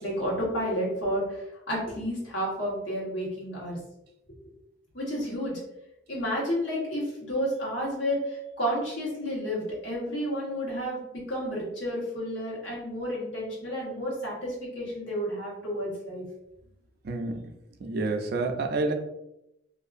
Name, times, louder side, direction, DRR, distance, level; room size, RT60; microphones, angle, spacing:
voice 1, 0.0-3.8 4.9-5.6 6.1-16.2, equal, 75° left, -5 dB, 1.2 m, -31 dB
voice 2, 17.0-17.4 17.8-18.9, right 3 dB, 55° right, 4 dB, 0.4 m, -28 dB
2.6 x 2.5 x 2.4 m, 0.85 s
head